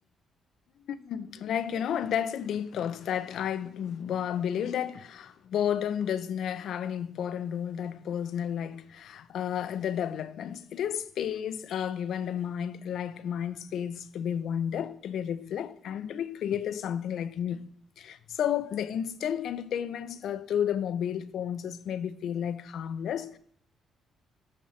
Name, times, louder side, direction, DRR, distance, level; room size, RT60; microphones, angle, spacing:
voice 1, 0.9-17.7 18.0-23.4, left 9 dB, 70° left, 0.5 m, -32 dB
9.5 x 8.5 x 3.2 m
cardioid pair, 90°, 0 cm